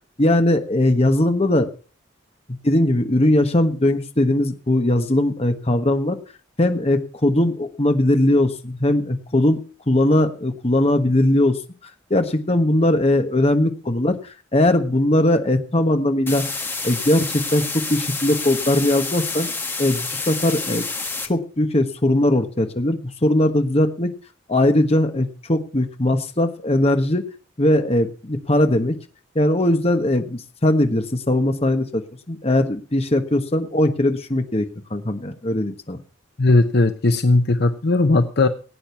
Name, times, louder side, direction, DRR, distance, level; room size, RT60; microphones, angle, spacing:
voice 1, 0.2-1.7 2.5-6.2 6.6-11.6 12.1-14.2 14.5-16.4 16.8-19.5 19.8-20.8 21.2-24.1 24.5-27.3 27.6-29.0 29.3-36.0, left 1 dB, 30° left, 6 dB, 1.3 m, -20 dB
sound 1, 16.3-21.3, left 3 dB, 10° left, 1.3 m, -28 dB
voice 2, 36.4-38.5, left 2 dB, 60° left, 9 dB, 0.8 m, -17 dB
17.0 x 9.0 x 5.6 m, 0.38 s
head